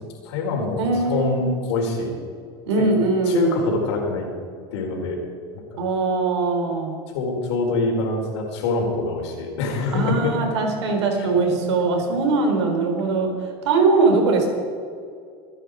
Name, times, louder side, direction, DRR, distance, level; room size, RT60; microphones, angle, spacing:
voice 1, 0.2-2.1 2.8-2.9 3.3-4.3 4.7-5.2 5.5-5.8 7.1-10.4, left 3 dB, 80° left, 1 dB, 4.4 m, -25 dB
voice 2, 0.8-1.6 2.7-3.6 5.8-6.9 9.9-14.5, right 3 dB, 90° right, 3 dB, 4.0 m, -21 dB
25.5 x 10.0 x 5.0 m, 2.3 s
supercardioid pair, 120°, 14 cm